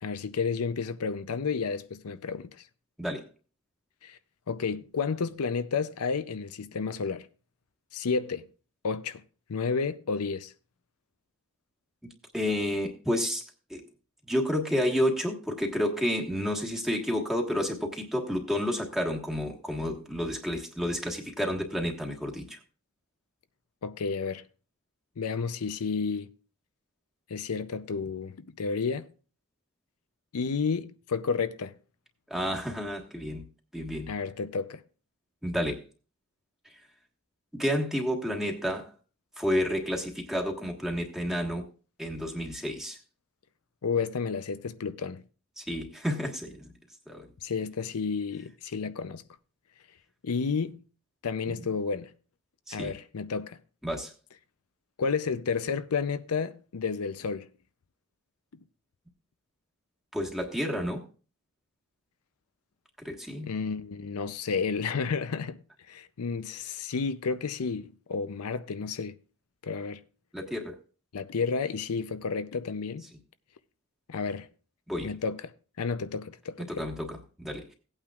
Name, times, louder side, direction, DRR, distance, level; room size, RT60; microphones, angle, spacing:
voice 1, 0.0-2.6 4.0-4.2 4.5-7.3 7.9-8.5 8.8-9.2 9.5-10.5 23.8-24.4 25.2-26.3 27.3-29.1 30.3-31.8 34.1-34.8 43.8-45.2 47.4-49.2 50.2-50.8 51.2-52.1 52.7-53.6 55.0-57.5 63.5-65.6 65.9-69.2 69.6-70.0 71.1-73.1 74.1-74.5 75.0-76.7, left 5 dB, 85° left, 0.6 m, -31 dB
voice 2, 3.0-3.3 12.3-13.8 14.3-22.6 32.3-33.4 33.7-34.1 35.4-35.8 36.6-36.8 37.5-38.9 39.4-41.7 42.0-43.0 45.6-46.7 47.1-47.3 51.5-51.6 52.7-52.9 53.8-54.1 60.1-61.0 63.0-63.5 70.3-70.8 74.9-75.1 76.6-77.7, equal, ahead, 1.4 m, -30 dB
17.0 x 8.8 x 2.4 m
head